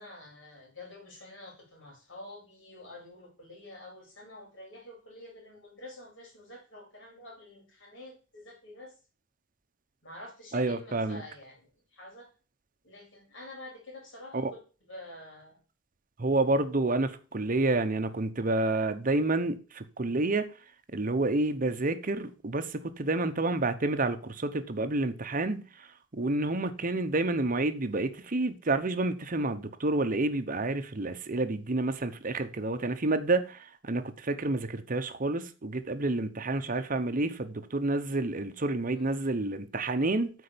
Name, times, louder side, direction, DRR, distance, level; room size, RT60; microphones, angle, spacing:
voice 1, 0.0-8.9 10.0-12.3 12.8-15.6 38.8-39.2, left 1 dB, 65° left, 4.1 m, -48 dB
voice 2, 10.5-11.2 14.3-14.5 16.2-20.5 20.9-25.9 26.1-40.3, right 2 dB, 40° right, 0.9 m, -29 dB
8.5 x 4.6 x 6.9 m
head